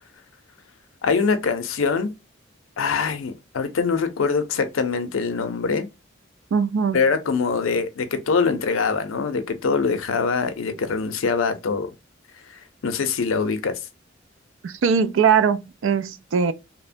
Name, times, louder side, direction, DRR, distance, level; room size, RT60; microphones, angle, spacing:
voice 1, 1.0-2.2 2.8-5.9 6.9-11.9 12.8-13.8, left 5 dB, 90° left, 0.5 m, -23 dB
voice 2, 6.5-7.0 14.6-16.5, right 6 dB, 75° right, 0.4 m, -21 dB
2.9 x 2.1 x 2.5 m
head